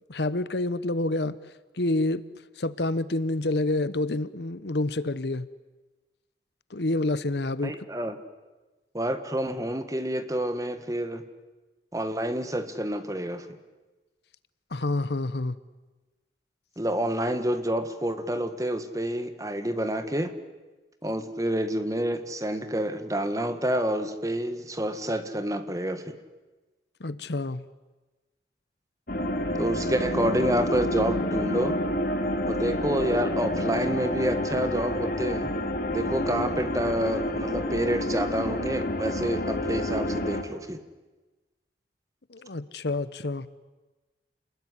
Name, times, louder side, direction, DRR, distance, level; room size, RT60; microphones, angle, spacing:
voice 1, 0.1-1.4 1.7-2.2 2.6-5.5 6.7-7.8 14.7-15.5 27.0-27.6 42.3-43.5, left 2 dB, 65° left, 16 dB, 1.0 m, -28 dB
voice 2, 7.6-8.2 8.9-11.2 11.9-13.5 16.8-20.3 21.0-26.1 29.6-31.8 32.5-35.5 35.9-40.8, equal, 20° right, 9 dB, 1.7 m, -28 dB
sound 1, 29.1-40.4, left 1 dB, 50° left, 2.6 m, -29 dB
29.0 x 20.5 x 9.9 m, 1.2 s
head